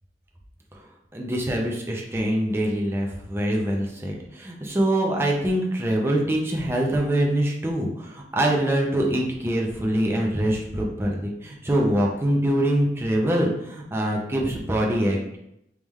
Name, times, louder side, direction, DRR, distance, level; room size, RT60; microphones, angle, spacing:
voice 1, 1.1-15.4, right 1 dB, 15° right, -1 dB, 0.5 m, -24 dB
3.5 x 3.3 x 3.1 m, 0.80 s
head